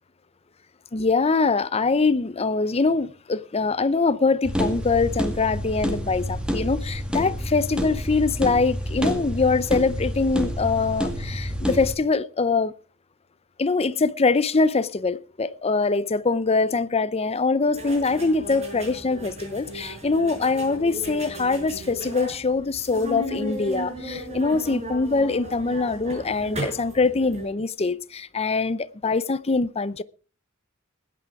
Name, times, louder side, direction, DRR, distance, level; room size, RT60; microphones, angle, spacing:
voice 1, 0.9-12.7 13.6-30.0, left 4 dB, 30° left, 0.6 m, -23 dB
sound 1, 4.4-12.0, equal, 5° right, 2.0 m, -28 dB
sound 2, 17.7-27.5, equal, 35° right, 5.8 m, -35 dB
20.0 x 9.2 x 4.8 m
head